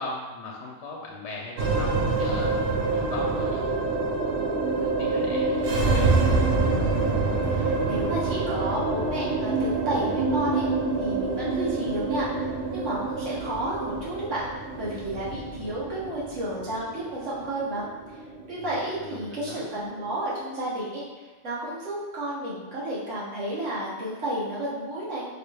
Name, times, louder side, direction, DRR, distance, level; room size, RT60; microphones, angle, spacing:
voice 1, 0.0-2.6 2.9-3.8 4.8-6.1 18.6-19.7, left 2 dB, 75° left, -2 dB, 0.8 m, -38 dB
sound 1, 1.6-20.1, right 3 dB, 60° right, 0.7 m, -26 dB
voice 2, 6.9-10.6 11.0-12.2 12.7-14.5 14.8-17.9 18.5-21.0 21.4-25.2, right 1 dB, 85° right, -7 dB, 1.4 m, -32 dB
4.7 x 2.2 x 3.2 m, 1.3 s
omnidirectional pair, 1.2 m